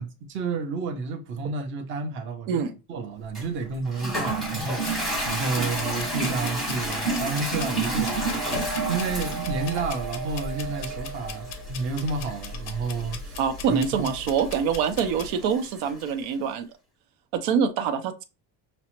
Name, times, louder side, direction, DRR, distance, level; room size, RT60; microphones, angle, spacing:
voice 1, 0.0-8.4 8.9-13.4 13.7-14.1, right 4 dB, 30° right, 0.5 m, -31 dB
Toilet flush, 3.4-16.1, right 2 dB, ahead, 0.8 m, -32 dB
sound 1, 4.8-15.3, left 4 dB, 35° left, 0.4 m, -39 dB
sound 2, 7.8-12.1, right 6 dB, 55° right, 1.0 m, -36 dB
voice 2, 13.4-16.7 17.3-18.2, right 7 dB, 90° right, 0.8 m, -25 dB
5.9 x 2.1 x 2.9 m
cardioid pair, 180°, 45 cm